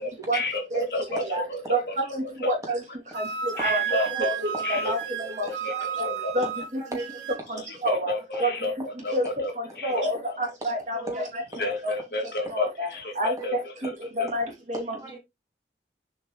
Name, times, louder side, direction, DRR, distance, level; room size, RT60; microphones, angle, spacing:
voice 1, 0.0-2.0 2.2-2.5 3.6-4.4 4.6-4.9 5.2-5.7 6.0-6.3 7.9-10.0 11.6-13.9 14.2-14.3, left 1 dB, 55° left, 2.4 m, -31 dB
voice 2, 1.1-1.4 1.7-1.8 2.1-2.8 3.1-3.2 3.6-3.8 4.4-5.5 6.3-6.8 7.5-8.1 8.4-8.5 9.1-9.2 9.8-11.9 12.5-12.9 13.2-13.9 14.2-15.0, equal, 40° right, 3.1 m, -28 dB
Wind instrument woodwind instrument, 3.1-7.4, right 8 dB, 85° right, 0.8 m, -32 dB
voice 3, 5.7-6.2 6.8-7.6 9.8-10.0 10.9-11.2 11.5-11.6 13.4-13.5 14.3-14.4 14.7-15.2, right 2 dB, 20° right, 2.7 m, -37 dB
7.4 x 5.1 x 3.3 m
head